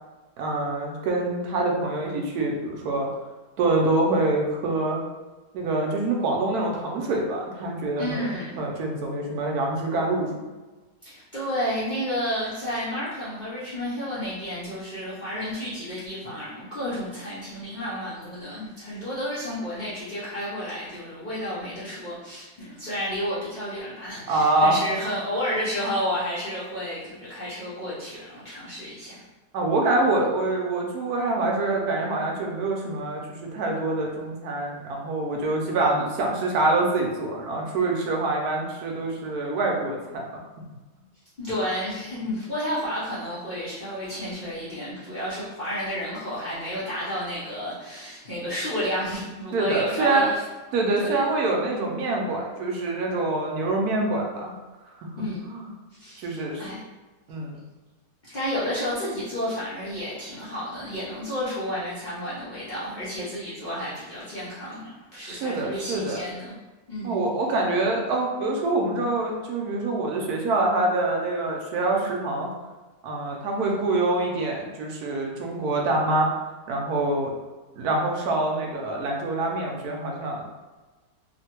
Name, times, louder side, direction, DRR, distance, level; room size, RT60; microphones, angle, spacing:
voice 1, 0.4-3.1 3.6-5.0 5.5-8.3 8.6-10.3 24.3-24.8 29.5-40.2 49.5-50.3 50.7-54.5 55.0-55.1 55.4-55.7 56.2-56.7 57.3-57.6 65.2-66.2 67.0-72.5 73.0-76.3 76.7-77.3 77.7-80.5, right 2 dB, 70° right, 0 dB, 1.0 m, -25 dB
voice 2, 8.0-8.6 11.0-29.2 41.4-50.4 51.0-51.2 55.2-55.4 56.0-56.8 58.3-66.6 66.9-67.2, equal, 80° left, -11 dB, 0.4 m, -31 dB
3.0 x 2.1 x 2.9 m, 1.2 s
omnidirectional pair, 1.9 m